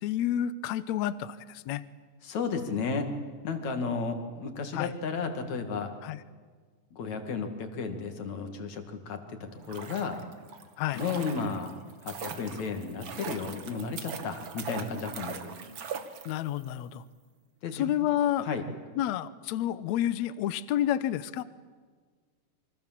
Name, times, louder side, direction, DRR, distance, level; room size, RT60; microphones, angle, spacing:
voice 1, 0.0-1.8 4.7-4.9 6.0-6.2 10.8-11.0 16.3-17.0 17.7-18.5 19.0-21.4, left 11 dB, 70° left, 15 dB, 1.8 m, -29 dB
voice 2, 2.2-3.1 3.4-5.9 6.9-10.2 10.9-11.7 12.0-15.5 17.6-17.9 18.4-18.6, left 5 dB, 55° left, 6 dB, 3.3 m, -33 dB
sound 1, 9.5-16.7 16.9-17.0, right 6 dB, 45° right, 1.8 m, -41 dB
27.5 x 24.5 x 7.6 m, 1.5 s
omnidirectional pair, 4.0 m